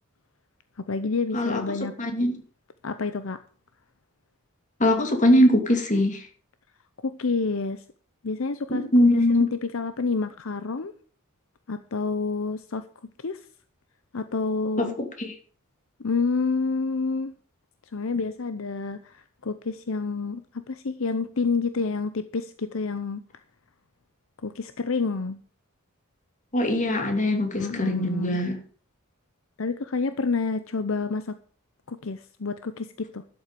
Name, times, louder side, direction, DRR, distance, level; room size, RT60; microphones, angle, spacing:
voice 1, 0.8-1.9 2.8-3.4 7.0-7.8 8.2-10.9 11.7-12.9 13.2-13.5 14.1-15.0 16.0-17.4 17.9-23.2 24.4-25.4 27.6-28.4 29.6-31.4 31.9-33.2, left 4 dB, 65° left, 11 dB, 0.7 m, -28 dB
voice 2, 2.0-2.3 4.8-6.3 8.7-9.4 14.8-14.9 15.2-15.3 26.5-28.6, left 1 dB, 35° left, 5 dB, 2.6 m, -21 dB
12.0 x 8.0 x 6.8 m, 0.43 s
head